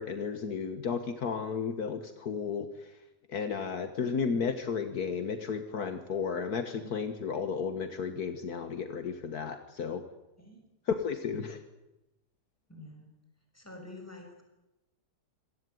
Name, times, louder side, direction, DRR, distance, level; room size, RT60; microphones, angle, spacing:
voice 1, 0.0-2.9 3.3-10.0 10.9-11.6, left 6 dB, 65° left, 9 dB, 1.8 m, -33 dB
voice 2, 12.7-13.1 13.5-14.4, left 1 dB, 10° left, 3 dB, 6.0 m, -47 dB
26.0 x 17.5 x 9.4 m, 0.95 s
omnidirectional pair, 1.8 m